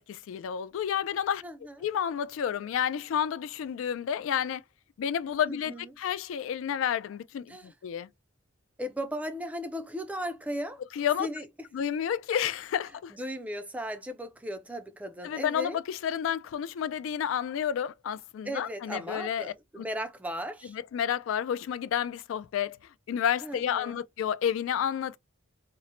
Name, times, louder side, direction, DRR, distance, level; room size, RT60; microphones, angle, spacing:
voice 1, 0.0-1.4 1.8-4.6 5.0-8.1 10.9-11.3 11.7-13.1 15.2-19.8 20.7-25.2, left 9 dB, 75° left, 0.3 m, -30 dB
voice 2, 1.4-1.8 5.5-5.9 7.5-7.7 8.8-10.8 11.2-11.5 13.1-15.8 18.4-20.8 23.4-24.0, equal, 5° right, 0.3 m, -36 dB
2.9 x 2.1 x 2.5 m
head